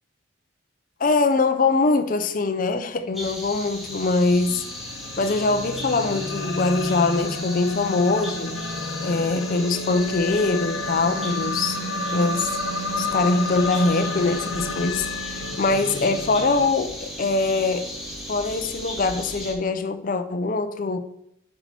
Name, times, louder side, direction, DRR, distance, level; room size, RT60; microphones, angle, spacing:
voice 1, 1.0-4.6 5.2-8.6 9.0-11.8 12.1-12.5 13.0-17.9 18.3-21.0, left 3 dB, 45° left, 0.6 m, -23 dB
sound 1, 3.1-19.5, equal, ahead, 2.0 m, -37 dB
sound 2, 3.6-16.7, left 2 dB, 80° left, 0.8 m, -31 dB
sound 3, 8.7-19.7, right 1 dB, 60° right, 0.9 m, -45 dB
8.8 x 5.5 x 4.2 m
head